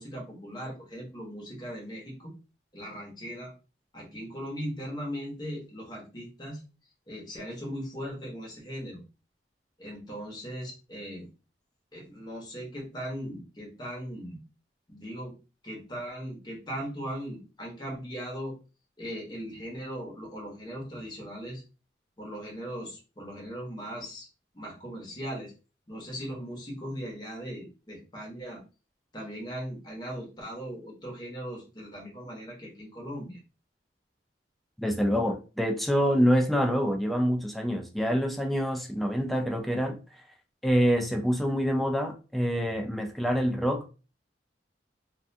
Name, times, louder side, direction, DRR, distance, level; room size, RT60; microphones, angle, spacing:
voice 1, 0.0-2.3 2.7-3.5 3.9-6.6 7.1-9.0 9.8-11.3 11.9-14.4 14.9-15.3 15.6-18.5 19.0-21.6 22.2-24.3 24.5-25.5 25.9-28.6 29.1-33.4, equal, 25° left, 0.9 m, -38 dB
voice 2, 34.8-40.0 40.6-43.9, equal, ahead, 0.3 m, -26 dB
2.4 x 2.2 x 2.5 m
head